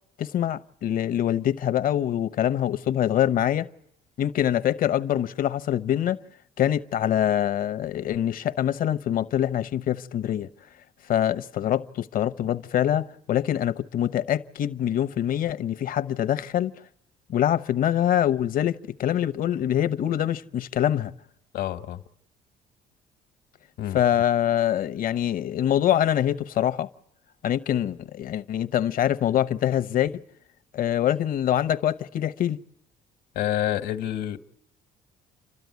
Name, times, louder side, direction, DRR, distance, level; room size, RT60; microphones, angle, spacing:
voice 1, 0.2-3.7 4.2-6.2 6.6-10.5 11.1-16.7 17.3-21.1 23.9-26.9 27.4-30.1 30.7-32.6, left 11 dB, 55° left, 0.9 m, -24 dB
voice 2, 21.5-22.0 23.8-24.0 33.3-34.4, left 12 dB, 75° left, 1.4 m, -28 dB
29.5 x 13.0 x 9.4 m
cardioid pair, 110°, 17 cm